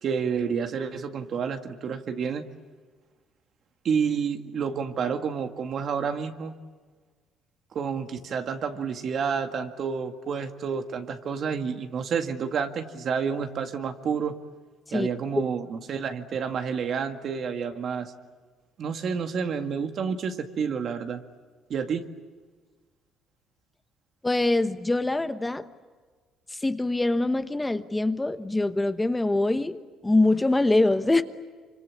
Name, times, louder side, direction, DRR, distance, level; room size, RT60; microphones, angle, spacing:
voice 1, 0.0-2.4 3.8-6.6 7.7-14.3 14.9-18.1 18.8-21.2 21.7-22.1, right 6 dB, 55° right, 6 dB, 2.0 m, -29 dB
voice 2, 24.2-25.7 26.5-31.2, left 2 dB, 15° left, 10 dB, 1.1 m, -24 dB
26.5 x 25.5 x 8.5 m, 1.5 s
cardioid pair, 95°, 0 cm